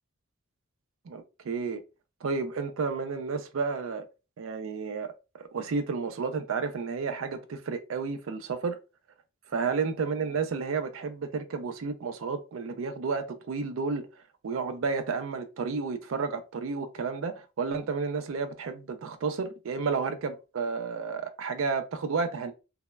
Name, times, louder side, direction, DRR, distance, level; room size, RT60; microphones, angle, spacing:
voice 1, 1.1-1.8 2.2-4.1 4.4-8.8 9.5-14.1 14.4-22.5, right 5 dB, 70° right, 0.4 m, -31 dB
3.0 x 2.0 x 2.2 m
head